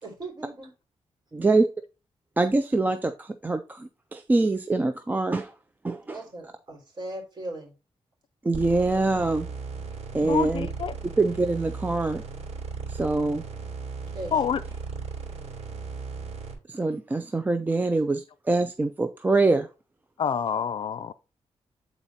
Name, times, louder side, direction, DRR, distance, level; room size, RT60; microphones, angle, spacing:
voice 1, 0.0-0.7 6.0-7.7 14.0-14.4, right 1 dB, 40° right, 3.5 m, -38 dB
voice 2, 1.3-1.7 2.4-5.5 5.8-6.2 8.4-9.5 10.1-10.7 11.2-12.2 12.9-13.4 16.7-19.7, right 3 dB, 15° right, 0.4 m, -24 dB
sound 1, 8.5-16.5, right 5 dB, 85° right, 2.8 m, -37 dB
voice 3, 10.3-10.9 14.3-14.6 20.2-21.1, left 7 dB, 50° left, 0.4 m, -27 dB
8.7 x 4.0 x 4.1 m
wide cardioid pair, 165°, 11 cm